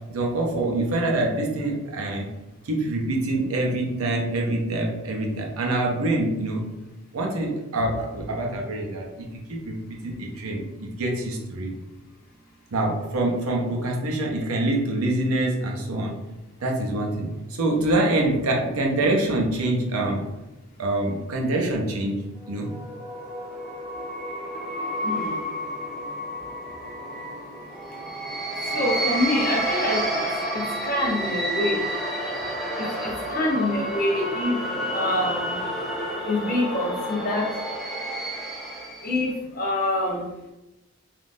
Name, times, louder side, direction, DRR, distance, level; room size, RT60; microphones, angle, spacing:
voice 1, 0.1-2.3 2.6-6.6 7.1-11.8 12.7-16.2 16.6-20.3 20.8-22.7, right 2 dB, 75° right, 0 dB, 0.6 m, -25 dB
sound 1, 22.4-39.2, right 1 dB, ahead, 0.3 m, -30 dB
voice 2, 25.0-25.4 28.6-30.2 30.5-31.8 32.8-34.6 34.9-35.6 36.3-37.5 39.0-40.2, left 1 dB, 40° left, -2 dB, 0.7 m, -26 dB
3.5 x 2.4 x 2.5 m, 1.0 s
head